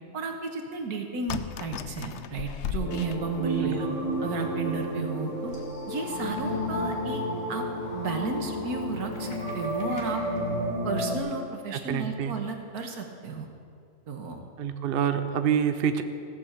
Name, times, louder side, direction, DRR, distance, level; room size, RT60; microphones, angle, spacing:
voice 1, 0.1-3.9 4.2-5.5 5.9-7.7 7.9-10.2 10.8-13.5 14.1-14.5, right 4 dB, 75° right, 4 dB, 1.7 m, -33 dB
sound 1, 1.3-3.8 4.4-4.5 4.8-4.9 5.5-5.8 6.1-6.4, left 9 dB, 70° left, 0.7 m, -36 dB
sound 2, 2.8-11.2, equal, 40° left, 2.4 m, -31 dB
voice 2, 3.6-4.0 11.7-12.3 14.6-16.0, right 8 dB, 55° right, 9 dB, 0.6 m, -27 dB
16.5 x 6.6 x 7.3 m, 2.5 s
omnidirectional pair, 1.6 m